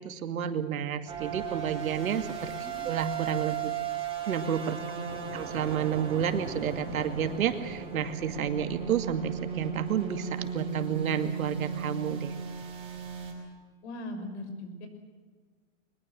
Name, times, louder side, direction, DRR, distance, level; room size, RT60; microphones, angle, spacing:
voice 1, 0.0-2.5 2.8-3.6 4.3-4.8 5.3-12.3, right 8 dB, 85° right, 8 dB, 2.4 m, -30 dB
sound 1, 1.1-13.3, right 8 dB, 15° right, 5.2 m, -36 dB
voice 2, 2.6-2.9 3.6-3.7 4.7-5.4 13.8-14.9, left 1 dB, 55° left, 7 dB, 6.0 m, -40 dB
22.5 x 20.5 x 7.7 m, 1.5 s
hypercardioid pair, 155°, 41 cm